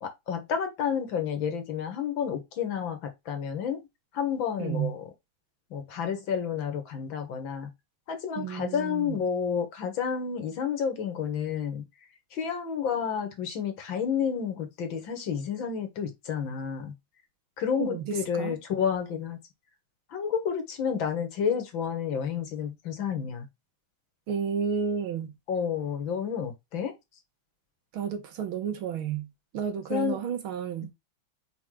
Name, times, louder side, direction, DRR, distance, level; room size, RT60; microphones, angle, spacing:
voice 1, 0.0-3.8 4.1-5.0 5.7-7.7 8.1-11.8 12.3-16.9 17.6-19.4 20.1-23.5 25.5-26.9 29.9-30.2, left 7 dB, 70° left, 2.1 m, -30 dB
voice 2, 4.6-4.9 8.4-9.2 17.8-18.6 24.3-25.3 27.9-29.3 29.5-30.9, right 7 dB, 90° right, 2.1 m, -31 dB
5.1 x 3.9 x 4.8 m
omnidirectional pair, 2.2 m